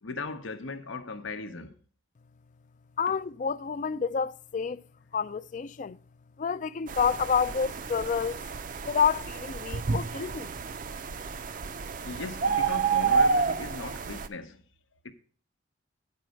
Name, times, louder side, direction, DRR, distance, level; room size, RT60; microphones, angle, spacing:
voice 1, 0.0-1.7 3.1-3.2 12.0-14.6 15.0-15.1, left 3 dB, 85° left, 0.8 m, -38 dB
voice 2, 3.0-4.8 5.1-6.0 6.4-8.4 8.9-10.5, left 6 dB, 40° left, 0.3 m, -29 dB
sound 1, 6.9-14.3, right 5 dB, 45° right, 0.4 m, -30 dB
9.5 x 4.6 x 6.3 m
head